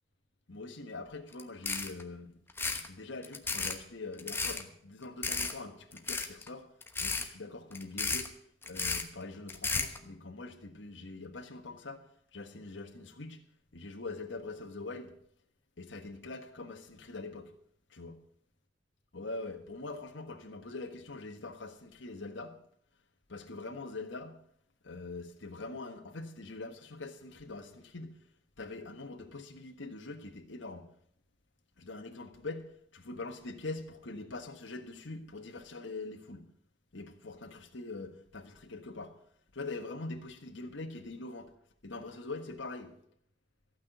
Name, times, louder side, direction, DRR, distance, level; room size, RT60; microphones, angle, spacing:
voice 1, 0.5-2.4 2.7-6.7 7.0-8.3 8.6-12.1 12.3-13.4 13.7-15.1 15.8-17.5 17.9-18.2 19.1-22.6 23.3-24.4 24.8-28.2 28.6-30.9 31.8-36.5 36.9-39.2 39.5-41.5 41.8-43.0, left 3 dB, 75° left, 1.5 m, -43 dB
sound 1, 1.3-1.4 1.7-2.0 2.5-2.9 3.2-3.7 4.2-4.6 5.2-5.5 5.9-6.5 6.8-7.3 7.7-8.3 8.6-9.0 9.5-10.0, left 4 dB, 10° left, 1.1 m, -33 dB
15.0 x 6.1 x 9.1 m
head